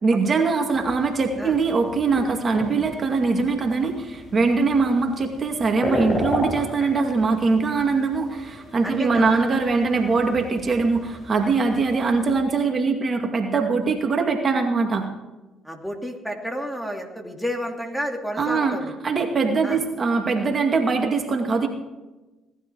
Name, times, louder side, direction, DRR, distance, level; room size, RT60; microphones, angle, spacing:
voice 1, 0.0-15.1 18.4-18.8 19.0-21.7, right 4 dB, 40° right, 3 dB, 2.2 m, -22 dB
sound 1, 0.7-12.4, left 1 dB, 40° left, 7.0 m, -35 dB
voice 2, 8.8-9.5 15.6-18.9 19.6-19.8, equal, ahead, 2 dB, 2.9 m, -31 dB
18.5 x 12.5 x 4.7 m, 1.1 s
supercardioid pair, 65°, 0 cm